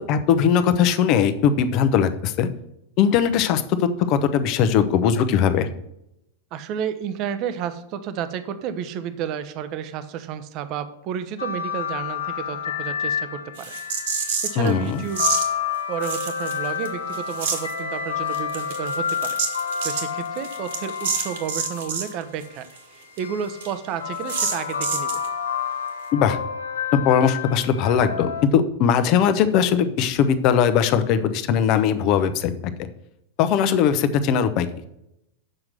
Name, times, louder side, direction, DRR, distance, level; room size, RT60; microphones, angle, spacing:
voice 1, 0.1-2.5 3.0-3.6 4.1-5.7 14.6-15.0 26.1-26.4 26.9-32.9 33.4-34.7, left 8 dB, 40° left, 11 dB, 0.8 m, -20 dB
voice 2, 6.5-13.8 14.1-15.3 15.9-25.1, right 8 dB, 40° right, 11 dB, 0.8 m, -31 dB
sound 1, 11.4-22.3 23.2-28.4, left 7 dB, 70° left, 0.8 m, -30 dB
sound 2, 13.6-14.7 15.1-15.5 16.0-16.9 17.1-17.7 18.3-22.1 22.4-22.5 22.8-22.9 23.2-23.3 23.6-23.7 24.3-25.3, right 6 dB, 60° right, 1.7 m, -28 dB
7.7 x 5.9 x 6.5 m, 0.81 s
figure-of-eight pair, 90°, 0 cm